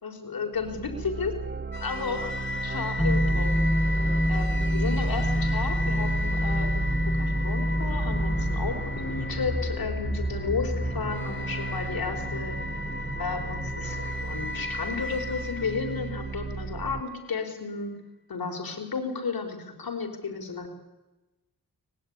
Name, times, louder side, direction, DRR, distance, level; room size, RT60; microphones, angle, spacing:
voice 1, 0.0-1.3 1.8-2.3 2.6-3.6 4.3-12.6 13.2-17.9 18.3-20.7, left 5 dB, 75° left, 4 dB, 4.7 m, -33 dB
sound 1, 0.5-17.0, right 5 dB, 30° right, 0.9 m, -36 dB
Sci Fi Growl Scream B, 1.7-16.9, left 2 dB, 35° left, 5.9 m, -34 dB
sound 2, 3.0-8.7, equal, 5° left, 1.1 m, -25 dB
23.5 x 20.0 x 9.8 m, 1.1 s
cardioid pair, 45°, 36 cm